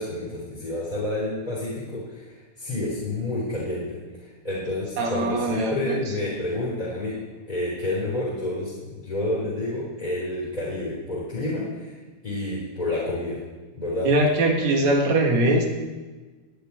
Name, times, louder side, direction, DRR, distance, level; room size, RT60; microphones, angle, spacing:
voice 1, 0.0-4.0 4.4-7.1 7.5-11.9 12.2-13.4 13.7-14.1, left 1 dB, 10° left, -7 dB, 3.4 m, -29 dB
voice 2, 5.0-6.0 14.0-15.7, right 1 dB, 55° right, 2 dB, 2.5 m, -21 dB
18.5 x 6.8 x 9.7 m, 1.3 s
omnidirectional pair, 4.7 m